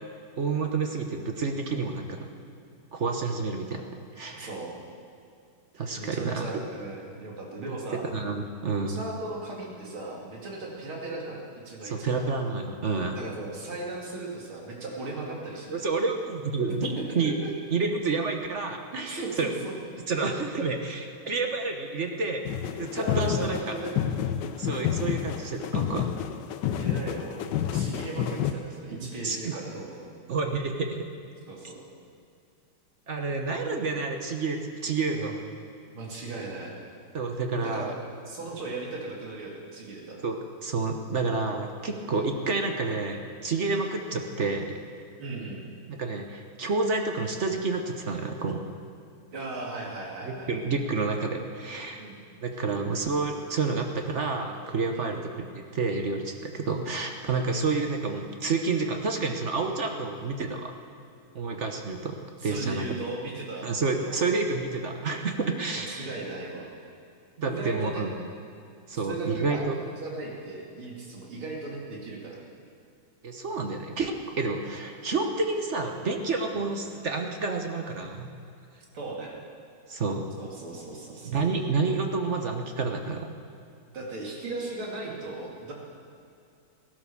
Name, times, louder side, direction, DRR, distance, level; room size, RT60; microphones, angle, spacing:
voice 1, 0.4-2.3 2.9-3.9 4.2-4.5 5.7-6.5 8.1-9.0 11.8-13.2 15.7-17.3 17.7-19.5 20.1-22.5 22.8-23.7 24.6-26.1 28.9-29.6 30.3-31.0 33.1-35.3 37.1-37.9 40.2-40.4 40.6-44.8 45.9-48.6 50.2-52.0 52.4-55.4 55.7-60.7 61.3-62.2 62.4-62.8 63.6-66.1 67.4-68.1 68.9-69.7 73.2-78.3 79.9-80.3 81.2-83.3, right 4 dB, 45° right, 4 dB, 1.1 m, -29 dB
voice 2, 4.4-4.7 6.0-8.0 8.9-12.3 13.1-15.8 16.8-17.5 18.9-19.7 23.0-23.9 26.8-30.0 31.5-31.8 33.6-33.8 35.1-35.4 35.9-36.7 37.6-38.0 38.3-40.2 45.2-45.7 49.3-50.5 52.0-52.2 55.0-55.2 62.4-63.7 64.0-64.3 65.7-66.7 67.4-68.1 68.9-72.4 74.5-74.6 76.5-76.7 78.9-79.3 80.4-81.4 83.9-85.7, right 2 dB, 80° right, -2 dB, 3.5 m, -37 dB
sound 1, 22.5-28.5, left 9 dB, 70° left, 1.2 m, -29 dB
17.0 x 11.5 x 6.9 m, 2.6 s
omnidirectional pair, 2.3 m